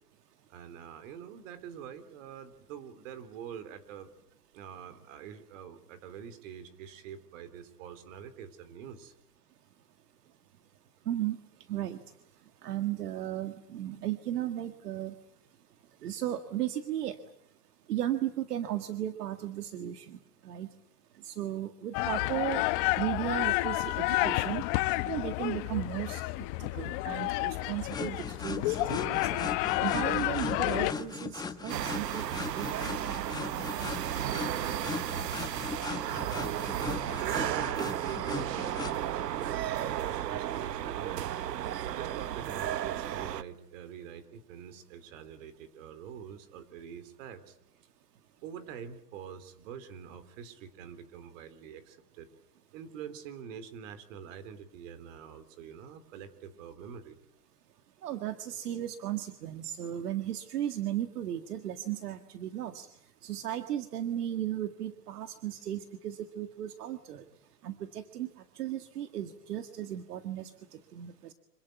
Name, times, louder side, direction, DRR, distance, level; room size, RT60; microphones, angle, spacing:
voice 1, 0.5-4.1 4.5-9.1 34.8-35.2 36.1-47.6 48.4-52.3 52.7-57.2, right 8 dB, 50° right, 12 dB, 3.8 m, -45 dB
voice 2, 11.1-11.4 11.7-12.0 12.6-15.1 16.0-17.2 17.9-20.2 20.4-20.7 21.2-22.6 23.0-24.6 25.1-26.2 26.6-29.5 29.8-32.3 32.6-32.7 58.0-62.9 63.2-67.2 67.6-68.3 68.6-70.5 70.9-71.3, right 12 dB, 75° right, 8 dB, 1.9 m, -35 dB
sound 1, 21.9-30.9, left 19 dB, 35° left, 1.0 m, -30 dB
sound 2, 27.9-39.0, left 4 dB, 10° left, 1.5 m, -39 dB
sound 3, 31.7-43.4, right 11 dB, 90° right, 1.1 m, -34 dB
26.5 x 18.5 x 9.4 m, 0.80 s
hypercardioid pair, 140°, 47 cm